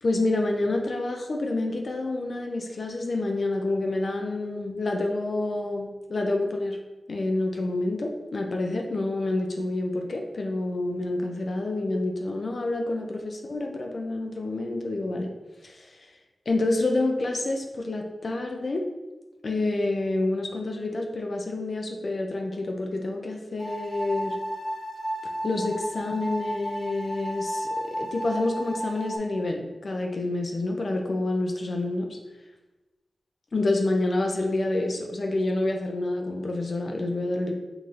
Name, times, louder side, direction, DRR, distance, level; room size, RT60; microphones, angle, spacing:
voice 1, 0.0-6.8 7.1-15.3 15.6-16.1 16.5-18.9 19.4-24.4 25.4-32.2 33.5-37.5, left 2 dB, 55° left, 2 dB, 0.5 m, -28 dB
sound 1, 23.6-29.2, equal, 20° left, 1.1 m, -33 dB
5.7 x 2.6 x 3.2 m, 1.1 s
wide cardioid pair, 100°, 0 cm